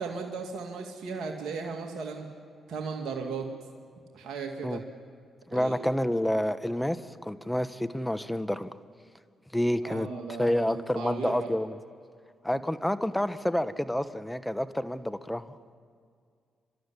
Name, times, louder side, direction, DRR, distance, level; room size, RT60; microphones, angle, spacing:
voice 1, 0.0-2.3 2.7-3.5 4.1-4.8 5.5-5.8 9.8-11.5, right 4 dB, 70° right, 2 dB, 2.1 m, -36 dB
voice 2, 5.5-8.7 9.5-10.1 10.4-11.8 12.4-15.6, left 1 dB, 5° left, 12 dB, 1.2 m, -29 dB
28.5 x 13.0 x 9.9 m, 2.2 s
supercardioid pair, 50°, 0 cm